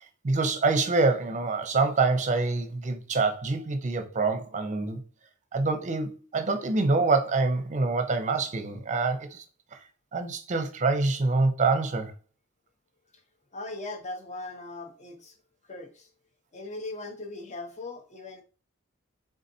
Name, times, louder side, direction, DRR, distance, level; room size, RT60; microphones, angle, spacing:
voice 1, 0.2-5.0 5.5-9.4 9.7-9.8 10.1-12.1, right 3 dB, 35° right, 0.6 m, -26 dB
voice 2, 13.5-15.3 15.7-16.1 16.5-18.4, left 2 dB, 30° left, 0.8 m, -39 dB
4.0 x 3.7 x 2.7 m
head